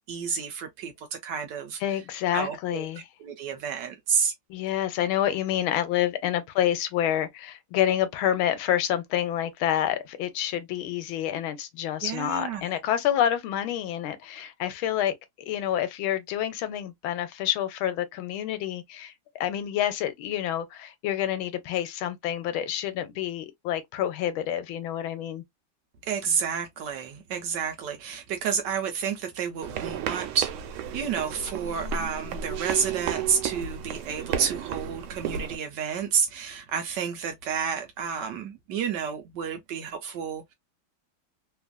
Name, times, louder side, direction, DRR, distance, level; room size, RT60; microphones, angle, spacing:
voice 1, 0.0-2.0 2.3-2.9 3.2-4.3 12.0-12.8 26.0-40.5, right 7 dB, 75° right, 1.1 m, -30 dB
voice 2, 1.8-3.0 4.5-15.1 15.5-25.4, left 11 dB, 85° left, 1.4 m, -28 dB
sound 1, 29.6-35.6, right 8 dB, 90° right, 1.4 m, -33 dB
3.4 x 2.4 x 2.2 m
omnidirectional pair, 2.2 m